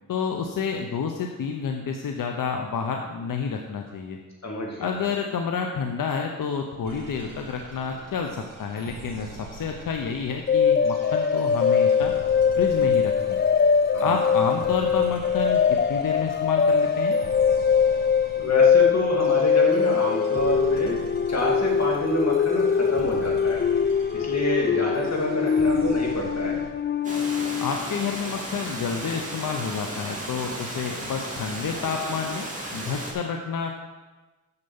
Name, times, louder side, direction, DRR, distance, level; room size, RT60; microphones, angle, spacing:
voice 1, 0.1-4.2 4.8-12.1 12.6-13.4 14.0-17.1 27.6-32.4 32.7-33.8, left 6 dB, 90° left, 3 dB, 0.8 m, -29 dB
voice 2, 4.4-5.0 13.9-14.1 18.4-21.0 21.3-23.7 24.1-26.6, equal, 55° left, -1 dB, 2.5 m, -27 dB
sound 1, 6.8-26.7, right 3 dB, 85° right, 1.9 m, -44 dB
sound 2, 10.5-27.9, left 6 dB, 35° left, 0.4 m, -22 dB
Water, 27.0-33.1, right 1 dB, 25° right, 2.6 m, -34 dB
6.8 x 6.7 x 7.1 m, 1.2 s
cardioid pair, 70°, 32 cm